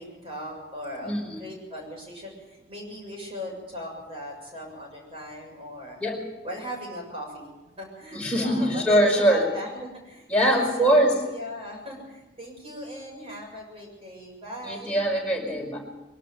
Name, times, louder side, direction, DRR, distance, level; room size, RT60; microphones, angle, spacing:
voice 1, 0.0-6.0 6.4-7.5 7.8-15.0, left 1 dB, 30° right, 0 dB, 7.1 m, -38 dB
voice 2, 1.0-1.4 6.0-6.2 8.1-9.5 10.3-11.2 14.6-15.8, right 1 dB, 5° left, -2 dB, 4.9 m, -22 dB
23.0 x 12.5 x 9.2 m, 1.1 s
head